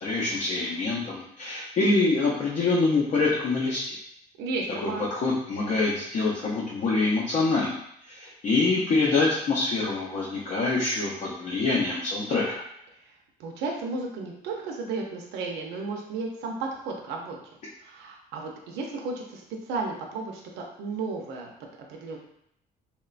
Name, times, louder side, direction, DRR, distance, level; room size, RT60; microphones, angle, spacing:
voice 1, 0.0-4.0 4.8-7.8 8.1-12.6, left 3 dB, 45° left, -5 dB, 0.5 m, -25 dB
voice 2, 4.4-5.1 13.1-13.2 13.4-17.4 17.8-21.5 21.9-22.2, right 3 dB, 90° right, 0 dB, 0.6 m, -33 dB
3.0 x 2.1 x 2.4 m, 0.75 s
cardioid pair, 110°, 17 cm